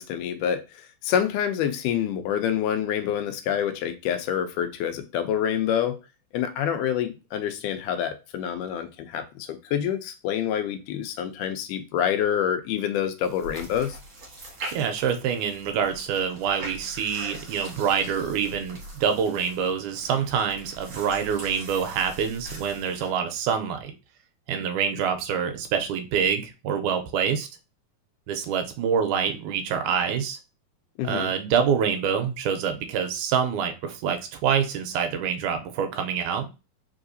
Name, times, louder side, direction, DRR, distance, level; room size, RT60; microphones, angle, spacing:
voice 1, 0.0-6.0 6.3-14.0 31.0-31.3, left 9 dB, 80° left, 2.1 m, -27 dB
sound 1, 13.2-23.1, right 1 dB, 45° right, 1.9 m, -42 dB
voice 2, 14.7-23.9 24.5-27.5 28.3-30.4 31.0-36.5, right 7 dB, 85° right, 2.1 m, -26 dB
4.8 x 3.5 x 2.6 m
omnidirectional pair, 3.6 m